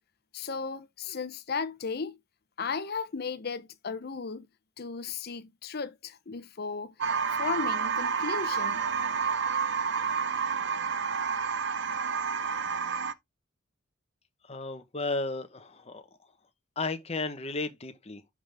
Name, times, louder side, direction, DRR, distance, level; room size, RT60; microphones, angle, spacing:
voice 1, 0.3-2.2 2.6-4.5 4.8-6.9 7.4-8.9, left 5 dB, 50° left, 0.7 m, -35 dB
sound 1, 7.0-13.1, right 6 dB, 60° right, 0.7 m, -29 dB
voice 2, 14.5-16.0 16.8-18.2, left 3 dB, 30° left, 1.0 m, -34 dB
11.0 x 3.7 x 3.3 m
head